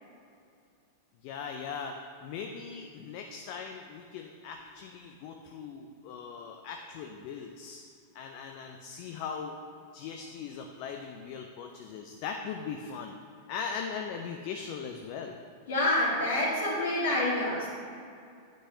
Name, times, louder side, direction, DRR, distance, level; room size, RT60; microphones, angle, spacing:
voice 1, 1.2-7.8 8.1-9.6 9.9-13.2 13.5-15.3, left 6 dB, 50° left, 4 dB, 0.5 m, -39 dB
voice 2, 15.7-17.7, left 1 dB, 65° left, -5 dB, 1.7 m, -27 dB
9.4 x 6.1 x 2.8 m, 2.3 s
figure-of-eight pair, 90°, 0 cm